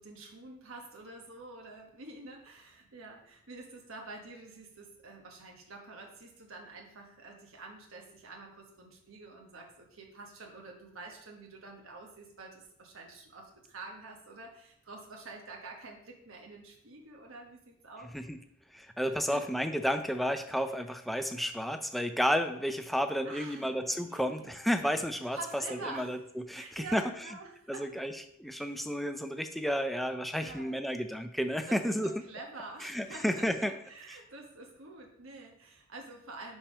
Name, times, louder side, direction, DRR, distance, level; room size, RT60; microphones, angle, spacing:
voice 1, 0.0-18.1 19.1-19.4 23.2-24.6 25.3-26.1 26.5-27.9 28.5-28.8 30.3-30.8 31.7-36.6, right 3 dB, 80° right, 1 dB, 1.2 m, -47 dB
voice 2, 18.7-25.4 25.7-26.2 26.5-27.1 27.7-32.2 32.8-33.7 34.1-34.2, equal, ahead, 8 dB, 0.4 m, -32 dB
5.6 x 4.3 x 5.1 m, 0.71 s
head